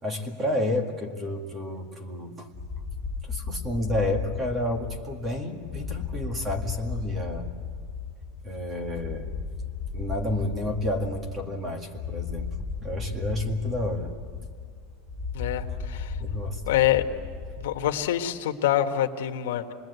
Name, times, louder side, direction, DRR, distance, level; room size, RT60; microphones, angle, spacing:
voice 1, 0.0-2.5 3.2-7.5 8.4-9.3 9.9-14.1 16.2-16.6, left 1 dB, 20° right, 4 dB, 2.0 m, -30 dB
sound 1, 2.5-18.1, left 5 dB, 20° left, 0.8 m, -35 dB
voice 2, 15.3-16.1 16.6-17.0 17.6-19.7, left 12 dB, 90° left, 5 dB, 1.5 m, -25 dB
27.5 x 20.5 x 8.2 m, 2.2 s
supercardioid pair, 175°, 0 cm